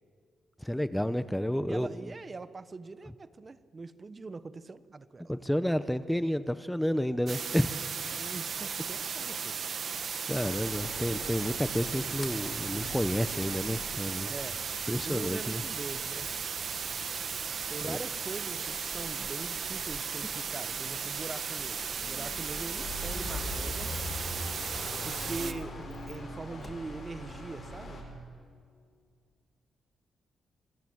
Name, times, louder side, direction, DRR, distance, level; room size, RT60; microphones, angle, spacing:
voice 1, 0.6-1.9 5.3-7.8 10.3-14.3 14.9-15.6 17.8-18.0, equal, 5° left, 12 dB, 0.8 m, -30 dB
voice 2, 1.6-5.4 8.1-9.6 14.2-14.7 15.0-16.3 17.7-23.9 25.0-28.0, right 3 dB, 30° right, 13 dB, 1.0 m, -42 dB
sound 1, 7.3-25.5, right 6 dB, 55° right, 1.1 m, -36 dB
sound 2, 10.3-28.0, left 1 dB, 55° left, 7.7 m, -43 dB
Sliding door, 12.0-28.2, left 3 dB, 35° left, 2.1 m, -55 dB
27.5 x 21.5 x 8.0 m, 2.1 s
cardioid pair, 95°, 0 cm